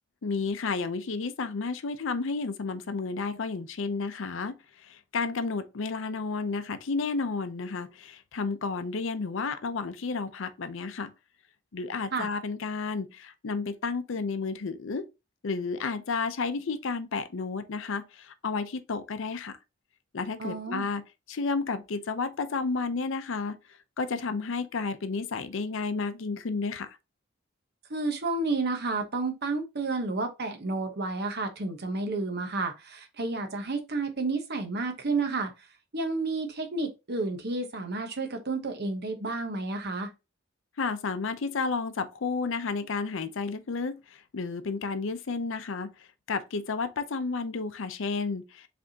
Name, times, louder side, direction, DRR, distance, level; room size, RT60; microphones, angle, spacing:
voice 1, 0.2-11.1 11.7-15.0 15.4-19.6 20.1-21.0 21.3-23.6 24.0-26.9 40.8-48.7, left 4 dB, 65° left, 0.6 m, -32 dB
voice 2, 20.4-20.9 27.9-35.5 35.9-40.1, right 3 dB, 50° right, 0.9 m, -31 dB
5.1 x 3.4 x 2.8 m
head